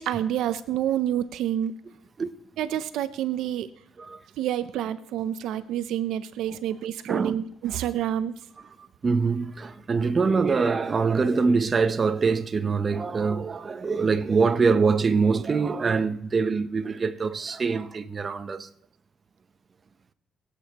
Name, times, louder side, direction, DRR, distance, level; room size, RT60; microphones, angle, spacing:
voice 1, 0.0-1.7 2.6-3.7 4.4-8.3, right 11 dB, 85° right, 0.5 m, -28 dB
voice 2, 9.0-18.7, right 4 dB, 35° right, 0.7 m, -24 dB
23.0 x 8.4 x 2.9 m
cardioid pair, 90°, 0 cm